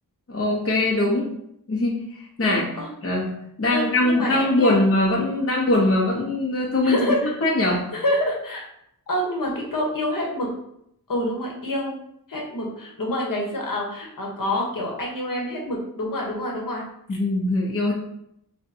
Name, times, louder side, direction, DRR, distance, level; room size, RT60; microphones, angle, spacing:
voice 1, 0.3-1.3 1.7-2.6 3.0-3.3 3.6-7.1 7.4-7.8 17.1-17.9, left 2 dB, 40° left, -3 dB, 1.0 m, -21 dB
voice 2, 2.4-2.9 3.7-4.8 6.8-7.3 7.9-8.6 9.1-10.5 11.1-11.9 12.3-16.8, left 1 dB, 65° left, -2 dB, 1.3 m, -27 dB
6.4 x 2.5 x 2.8 m, 0.75 s
wide cardioid pair, 85°, 35 cm